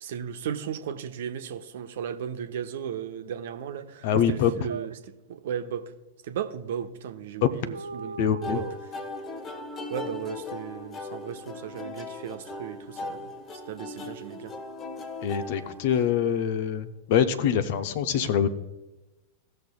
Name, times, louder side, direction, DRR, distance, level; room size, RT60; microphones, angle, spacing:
voice 1, 0.0-5.8 6.2-8.2 8.5-8.6 9.9-13.3 13.7-14.5 15.9-16.0, right 8 dB, 55° right, 7 dB, 0.8 m, -35 dB
sound 1, 3.8-3.9 4.1-4.3 4.7-5.0 7.7-8.8, right 4 dB, 75° right, 0.3 m, -37 dB
voice 2, 4.0-4.5 7.4-7.5 8.2-8.6 15.2-18.5, left 8 dB, 50° left, 11 dB, 0.7 m, -24 dB
sound 2, 8.4-16.4, left 2 dB, 25° left, 1.1 m, -38 dB
17.5 x 6.6 x 2.2 m, 1.0 s
figure-of-eight pair, 90°, 0 cm